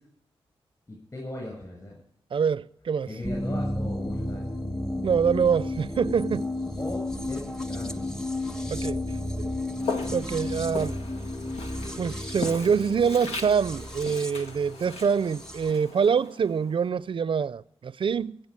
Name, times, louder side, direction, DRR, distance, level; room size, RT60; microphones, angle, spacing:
voice 1, 0.9-2.0 3.1-4.5 6.8-8.1, left 1 dB, 35° left, 7.7 m, -38 dB
voice 2, 2.3-3.1 5.0-6.5 8.7-9.0 9.4-9.5 10.1-11.0 12.0-18.4, right 6 dB, 55° right, 0.5 m, -25 dB
sound 1, 3.2-15.7, left 1 dB, 5° left, 0.9 m, -32 dB
Walk footsteps, 9.8-16.9, left 3 dB, 85° left, 1.5 m, -39 dB
17.0 x 7.9 x 8.9 m
cardioid pair, 55°, 10 cm